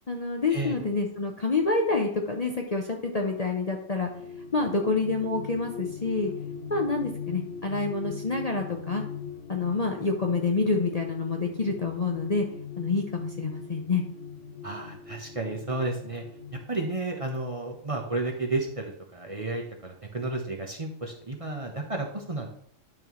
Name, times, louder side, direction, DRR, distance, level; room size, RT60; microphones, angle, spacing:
voice 1, 0.1-4.1 4.5-6.3 6.7-9.0 9.5-12.5 12.8-14.0, left 3 dB, 35° left, 1 dB, 0.7 m, -27 dB
sound 1, 3.8-16.6, left 6 dB, 65° left, 1.2 m, -40 dB
voice 2, 14.6-16.2 16.7-22.5, right 2 dB, 30° right, 1 dB, 1.0 m, -32 dB
11.0 x 5.4 x 3.1 m, 0.65 s
omnidirectional pair, 1.3 m